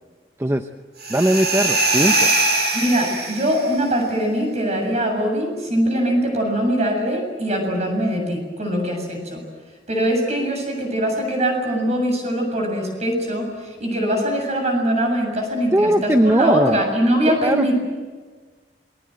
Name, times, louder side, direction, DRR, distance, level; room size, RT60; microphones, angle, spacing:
sound 1, 1.0-3.7, right 2 dB, 60° right, 6.6 m, -21 dB
voice 1, 1.1-2.3 15.7-16.8 17.3-17.7, right 1 dB, 15° right, 7 dB, 0.8 m, -19 dB
voice 2, 2.7-9.4 9.9-17.7, equal, 40° right, 3 dB, 7.5 m, -22 dB
27.5 x 21.5 x 7.9 m, 1.4 s
head